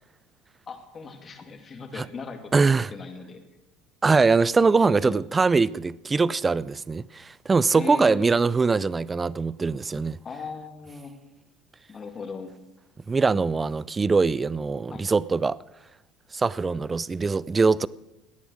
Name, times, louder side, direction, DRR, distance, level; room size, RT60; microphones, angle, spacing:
voice 1, 0.7-3.4 4.6-5.2 7.7-8.3 10.2-11.1 11.9-12.5 14.9-15.1, left 4 dB, 30° left, 2.2 m, -38 dB
voice 2, 2.5-2.9 4.0-10.2 13.1-15.6 16.3-17.9, right 4 dB, 20° right, 0.4 m, -22 dB
17.0 x 9.9 x 6.3 m
supercardioid pair, 105°, 0 cm